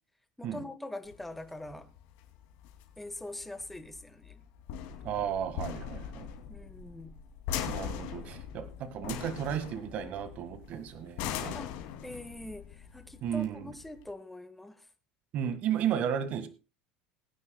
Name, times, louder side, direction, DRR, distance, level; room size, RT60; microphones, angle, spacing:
voice 1, 0.4-1.9 3.0-4.4 6.5-7.1 11.5-11.8 12.0-14.8, left 1 dB, 5° left, 1.3 m, -43 dB
sound 1, 1.1-14.1, left 8 dB, 70° left, 2.6 m, -40 dB
voice 2, 5.0-6.3 7.7-11.6 13.2-13.7 15.3-16.5, right 9 dB, 50° right, 1.7 m, -34 dB
21.5 x 9.7 x 2.3 m
supercardioid pair, 130°, 3 cm